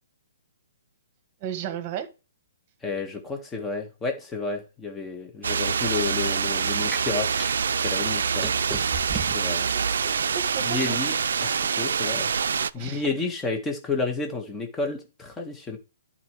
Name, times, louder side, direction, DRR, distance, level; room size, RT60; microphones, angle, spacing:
voice 1, 1.4-2.1 9.7-10.8 12.7-13.1, right 10 dB, 25° right, 1.6 m, -34 dB
voice 2, 2.8-7.4 7.8-8.5 9.1-10.1 10.6-11.1 11.4-12.3 12.7-15.8, left 3 dB, 10° left, 1.5 m, -31 dB
sound 1, 5.4-12.7, right 6 dB, 75° right, 0.5 m, -25 dB
sound 2, 6.9-7.6 8.4-9.5 10.1-11.0, right 4 dB, 5° right, 0.3 m, -35 dB
11.0 x 4.3 x 4.7 m
hypercardioid pair, 165°, 0 cm